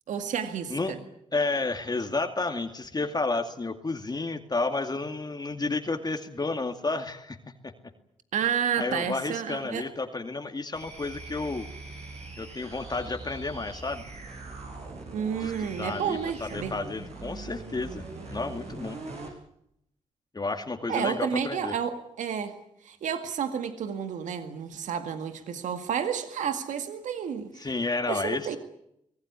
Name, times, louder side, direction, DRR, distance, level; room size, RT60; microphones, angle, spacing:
voice 1, 0.1-1.0 8.3-9.8 15.1-16.7 20.9-22.5 22.8-27.7 28.1-28.6, right 8 dB, 80° right, 8 dB, 2.0 m, -31 dB
voice 2, 1.3-7.4 8.8-11.7 12.4-14.1 15.4-18.0 18.3-19.0 20.3-21.7 27.6-28.5, left 3 dB, 35° left, 5 dB, 2.4 m, -31 dB
sound 1, 10.7-19.4, right 3 dB, 60° right, 6.9 m, -42 dB
24.0 x 18.0 x 9.8 m, 0.77 s
supercardioid pair, 55°, 12 cm